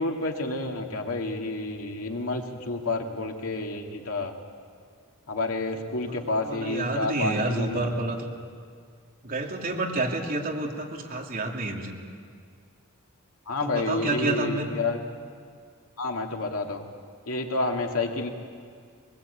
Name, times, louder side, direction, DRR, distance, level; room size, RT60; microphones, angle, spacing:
voice 1, 0.0-4.3 5.3-7.8 13.5-15.0 16.0-16.8 17.3-18.3, left 2 dB, 90° left, 2 dB, 2.2 m, -29 dB
voice 2, 6.0-8.3 9.2-11.9 13.6-14.7, right 2 dB, 45° right, 0 dB, 2.7 m, -29 dB
22.0 x 20.5 x 8.4 m, 2.1 s
head